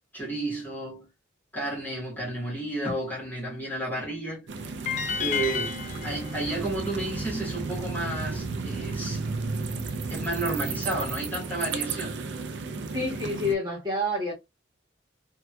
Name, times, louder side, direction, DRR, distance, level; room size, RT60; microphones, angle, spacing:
voice 1, 0.1-1.1 1.5-4.8 5.2-9.2 10.1-12.2, right 2 dB, 10° left, 1.4 m, -32 dB
sound 1, 4.5-13.5, right 4 dB, 65° right, 0.4 m, -33 dB
sound 2, 4.9-8.0, left 7 dB, 40° left, 0.5 m, -33 dB
voice 2, 12.9-14.3, left 1 dB, 25° right, 1.8 m, -28 dB
3.3 x 2.8 x 2.3 m
head